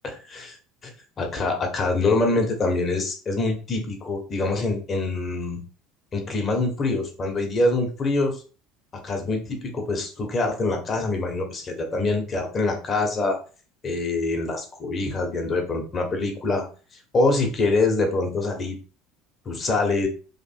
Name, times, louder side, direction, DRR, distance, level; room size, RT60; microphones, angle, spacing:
voice 1, 0.0-0.6 0.8-0.9 1.2-5.6 6.1-8.4 9.0-13.4 13.8-16.7 17.1-18.8 19.4-20.1, left 2 dB, 35° left, 3 dB, 1.3 m, -25 dB
3.3 x 2.6 x 4.5 m, 0.37 s
hypercardioid pair, 70°, 0 cm